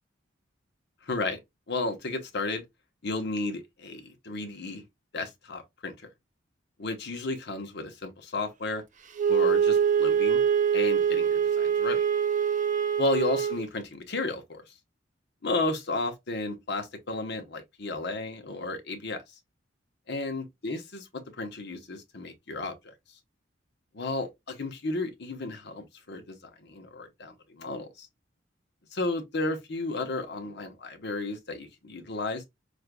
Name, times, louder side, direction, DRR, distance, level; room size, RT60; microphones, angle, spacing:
voice 1, 1.1-1.4 1.7-2.6 3.0-4.8 5.1-6.1 6.8-8.8 9.3-10.4 10.7-12.0 13.0-14.6 15.4-19.2 20.1-21.0 21.4-22.9 23.9-28.1 28.9-32.4, left 2 dB, 60° left, 1.0 m, -33 dB
Wind instrument woodwind instrument, 9.2-13.7, right 7 dB, 40° right, 0.5 m, -24 dB
6.4 x 2.6 x 2.2 m
head